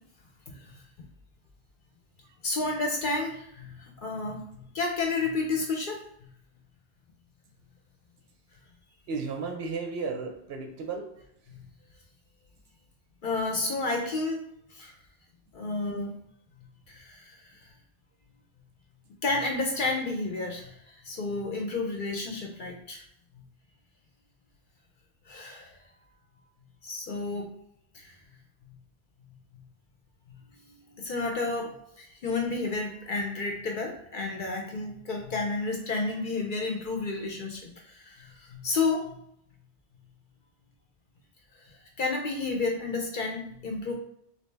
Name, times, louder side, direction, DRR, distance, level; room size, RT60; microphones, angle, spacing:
voice 1, 0.5-0.8 2.4-6.0 11.5-11.6 13.2-14.4 14.7-14.9 15.5-16.1 16.9-17.7 19.2-23.0 25.3-25.8 26.8-27.5 27.9-28.2 30.5-39.2 41.5-43.9, left 3 dB, 55° left, 1 dB, 0.7 m, -31 dB
voice 2, 9.1-11.1, right 4 dB, 70° right, 4 dB, 0.8 m, -34 dB
3.2 x 2.7 x 3.2 m, 0.72 s
omnidirectional pair, 1.2 m